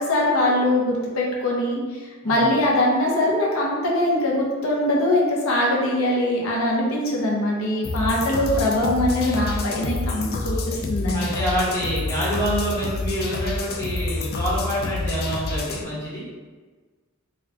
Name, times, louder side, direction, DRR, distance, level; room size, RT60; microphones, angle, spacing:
voice 1, 0.0-1.8 2.2-11.3, left 1 dB, 85° left, -3 dB, 0.7 m, -22 dB
sound 1, 7.8-15.8, left 3 dB, 50° left, 0.3 m, -28 dB
voice 2, 11.1-16.3, equal, 15° left, -8 dB, 1.1 m, -27 dB
4.0 x 2.3 x 2.8 m, 1.3 s
head